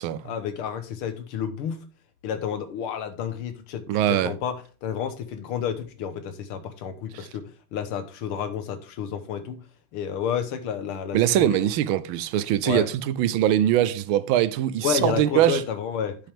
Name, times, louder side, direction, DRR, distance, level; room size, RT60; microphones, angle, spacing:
voice 1, 0.2-1.8 2.2-4.6 4.8-9.6 9.9-11.7 12.6-12.9 14.8-16.2, left 8 dB, 85° left, 1.9 m, -30 dB
voice 2, 3.9-4.3 7.1-7.3 11.1-15.6, right 12 dB, 80° right, 1.3 m, -22 dB
10.0 x 5.8 x 3.5 m
omnidirectional pair, 2.3 m